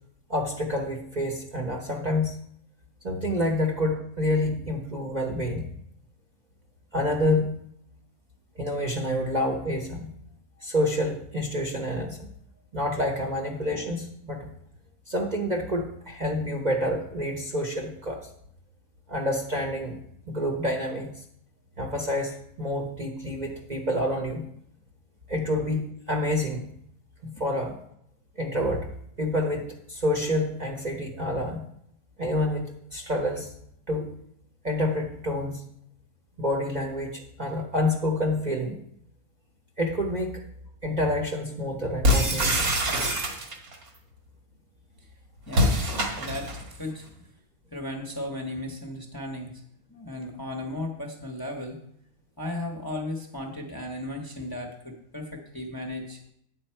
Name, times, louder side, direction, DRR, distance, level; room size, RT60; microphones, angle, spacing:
voice 1, 0.3-2.4 3.0-5.7 6.9-7.5 8.6-10.1 10.6-12.3 12.7-14.5 15.1-18.2 19.1-20.0 20.3-21.1 21.8-24.4 25.3-26.6 27.2-27.8 28.4-28.9 29.2-31.6 32.2-33.5 33.9-34.1 34.6-35.6 36.4-38.8 39.8-40.4 40.8-42.7, left 1 dB, 35° right, 1 dB, 0.9 m, -28 dB
sound 1, 42.0-43.8 45.5-46.6, equal, 75° right, 1.8 m, -24 dB
voice 2, 45.5-45.8 46.2-47.1 47.7-49.6 49.9-51.8 52.4-56.2, left 1 dB, 20° left, 2 dB, 0.8 m, -35 dB
8.9 x 6.7 x 4.4 m, 0.70 s
omnidirectional pair, 1.5 m